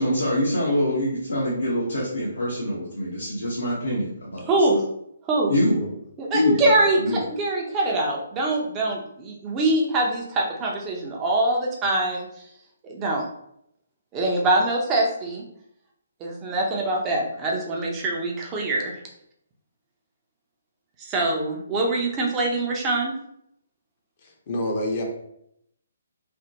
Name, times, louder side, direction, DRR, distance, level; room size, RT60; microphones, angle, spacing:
voice 1, 0.0-4.4 5.5-5.8 6.3-7.2, left 1 dB, 85° left, -7 dB, 0.9 m, -24 dB
voice 2, 4.5-4.8 5.3-5.5 6.2-12.3 12.8-13.2 14.1-15.4 16.2-18.9 21.0-23.1, right 2 dB, 20° right, -1 dB, 0.6 m, -24 dB
voice 3, 24.2-25.0, left 1 dB, 40° left, 1 dB, 0.6 m, -28 dB
3.3 x 2.1 x 2.8 m, 0.75 s
figure-of-eight pair, 140°, 0 cm